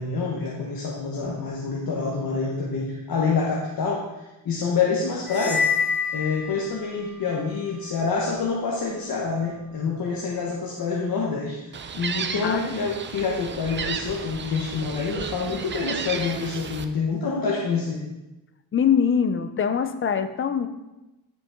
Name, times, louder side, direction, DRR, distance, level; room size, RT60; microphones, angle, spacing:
voice 1, 0.0-4.0 4.4-5.6 6.1-11.6 11.9-18.0, left 4 dB, 55° left, -3 dB, 1.2 m, -27 dB
sound 1, 5.3-7.1, left 6 dB, ahead, 1.6 m, -26 dB
Gull seagull, 11.7-16.8, right 6 dB, 30° right, 0.4 m, -33 dB
voice 2, 12.4-12.8 18.7-20.7, left 7 dB, 30° left, 10 dB, 0.5 m, -23 dB
10.5 x 6.0 x 3.6 m, 1.0 s
wide cardioid pair, 160°, 42 cm